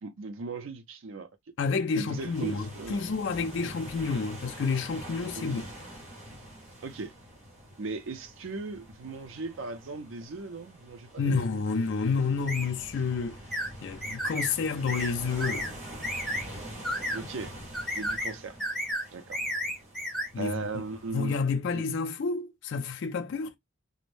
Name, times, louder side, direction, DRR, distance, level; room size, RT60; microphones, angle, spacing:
voice 1, 0.0-1.3 1.9-3.0 5.4-5.7 6.8-7.1 7.8-11.4 17.1-17.5 17.9-18.6 19.1-19.4 20.4-21.4 21.7-21.8, right 3 dB, 65° right, 0.5 m, -38 dB
voice 2, 1.6-5.6 11.2-13.4 13.8-15.7 20.3-20.6 21.1-23.6, left 4 dB, 55° left, 0.4 m, -29 dB
sound 1, 2.1-21.4, right 1 dB, 35° right, 1.0 m, -45 dB
sound 2, 12.5-12.7 13.5-13.7 14.0-14.5 14.9-15.1 15.4-15.7 16.0-16.4 16.8-17.2 17.7-18.3 18.6-19.0 19.3-20.3, equal, ahead, 0.7 m, -32 dB
2.5 x 2.0 x 3.2 m
head